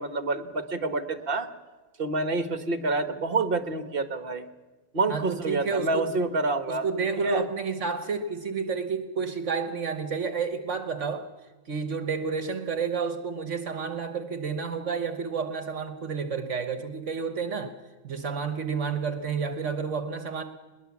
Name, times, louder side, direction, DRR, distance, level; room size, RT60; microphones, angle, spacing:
voice 1, 0.0-1.5 2.0-4.4 4.9-6.8 7.2-7.4, right 3 dB, 45° right, 9 dB, 1.5 m, -27 dB
voice 2, 5.1-6.1 6.7-11.3 11.6-17.8 18.0-20.4, right 5 dB, 65° right, 8 dB, 1.4 m, -30 dB
21.5 x 20.0 x 7.2 m, 1.2 s
omnidirectional pair, 1.4 m